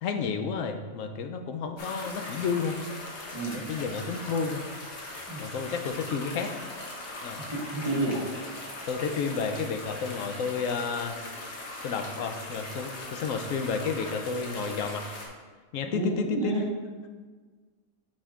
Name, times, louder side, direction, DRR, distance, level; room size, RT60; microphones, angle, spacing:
voice 1, 0.0-2.8 3.5-4.6 5.4-6.5 7.2-7.5 8.9-11.2 11.8-15.2 15.7-16.6, left 5 dB, 80° left, 5 dB, 1.0 m, -31 dB
sound 1, 1.8-15.3, left 2 dB, 60° left, 1.2 m, -40 dB
voice 2, 7.5-8.2 15.9-16.6, right 2 dB, 20° right, -6 dB, 1.4 m, -29 dB
8.5 x 5.2 x 2.5 m, 1.4 s
omnidirectional pair, 1.3 m